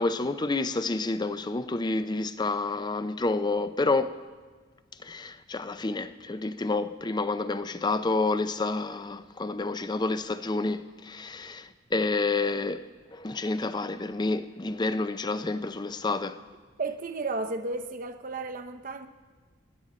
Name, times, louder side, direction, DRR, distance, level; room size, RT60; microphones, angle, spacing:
voice 1, 0.0-4.2 5.0-16.4, left 3 dB, 20° left, 0.5 m, -29 dB
voice 2, 16.8-19.1, right 3 dB, 45° right, 0.8 m, -33 dB
25.5 x 10.5 x 4.3 m
head